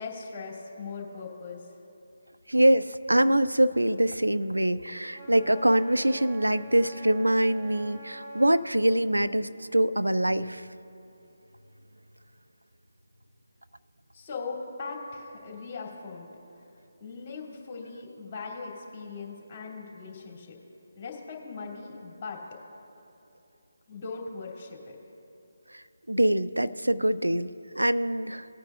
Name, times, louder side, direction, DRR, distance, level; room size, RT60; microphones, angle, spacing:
voice 1, 0.0-1.7 14.1-16.3 17.0-20.6 20.9-22.4 23.9-25.0, left 4 dB, 25° left, -1 dB, 2.9 m, -39 dB
voice 2, 2.5-10.7 25.7-28.5, right 1 dB, 85° right, 14 dB, 0.4 m, -24 dB
Wind instrument woodwind instrument, 5.1-8.7, right 1 dB, 30° right, 2.4 m, -44 dB
20.0 x 9.4 x 2.5 m, 2.8 s
figure-of-eight pair, 150°, 0 cm